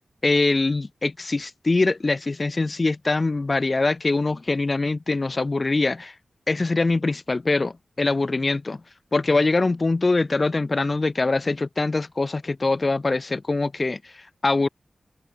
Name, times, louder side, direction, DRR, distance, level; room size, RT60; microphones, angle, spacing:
voice 1, 0.2-6.1 6.5-8.8 9.1-14.7, left 3 dB, 45° left, 2.3 m, -23 dB
cardioid pair, 45°, 0 cm